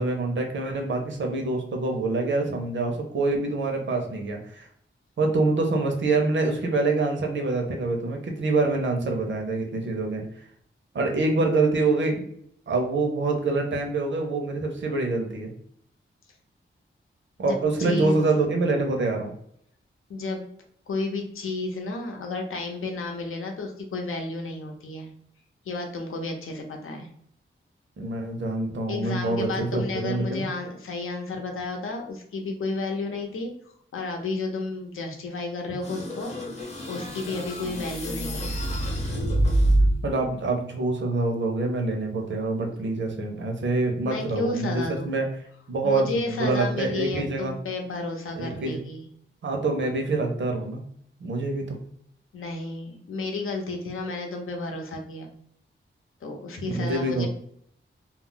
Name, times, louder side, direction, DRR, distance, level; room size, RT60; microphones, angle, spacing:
voice 1, 0.0-4.7 5.2-10.2 10.9-12.3 12.7-15.5 17.4-19.3 28.0-30.4 40.0-45.2 45.7-47.5 48.3-48.8 49.4-50.8 51.2-51.8 56.6-57.3, right 3 dB, 65° right, 2 dB, 0.7 m, -26 dB
voice 2, 17.4-18.1 20.1-20.5 20.9-25.1 25.6-27.1 28.9-33.5 33.9-36.3 36.9-38.6 44.0-45.1 45.8-49.1 52.3-55.3 56.2-57.3, left 3 dB, 80° left, 2 dB, 0.6 m, -32 dB
sound 1, 35.8-40.2, right 1 dB, 30° left, 0.7 m, -26 dB
2.3 x 2.0 x 3.7 m, 0.67 s
wide cardioid pair, 155°, 21 cm